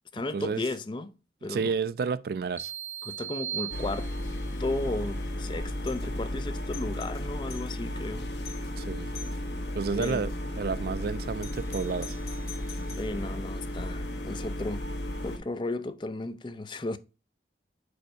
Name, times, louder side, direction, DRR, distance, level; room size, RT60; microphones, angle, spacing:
voice 1, 0.1-1.1 1.4-1.7 3.0-4.1 4.6-8.3 10.0-10.3 13.0-14.9 15.2-17.0, left 2 dB, 25° left, 0.4 m, -34 dB
voice 2, 1.5-2.7 8.8-9.1 9.8-12.2, right 5 dB, 55° right, 0.3 m, -31 dB
sound 1, 2.6-4.5, right 10 dB, 10° right, 0.8 m, -37 dB
sound 2, 3.7-15.4, left 1 dB, 75° left, 1.2 m, -34 dB
Doorbell, 5.8-6.1 6.5-7.8 8.1-8.2 8.4-8.7 9.1-9.4 10.0-10.4 11.4-13.2, left 7 dB, 55° left, 1.1 m, -46 dB
5.0 x 4.6 x 5.0 m
head